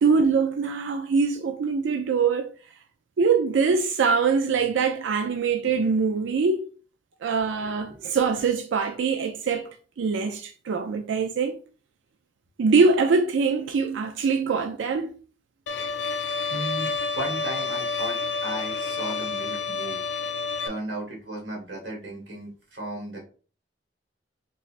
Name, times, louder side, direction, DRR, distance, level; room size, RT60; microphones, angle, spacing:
voice 1, 0.0-2.5 3.2-6.6 7.2-9.7 10.0-11.6 12.6-15.1, right 5 dB, 85° right, 0.4 m, -23 dB
Bowed string instrument, 15.7-20.7, left 5 dB, 65° left, 0.5 m, -29 dB
voice 2, 16.5-20.0 20.6-23.3, right 1 dB, 70° right, 1.6 m, -35 dB
3.7 x 3.2 x 2.5 m
head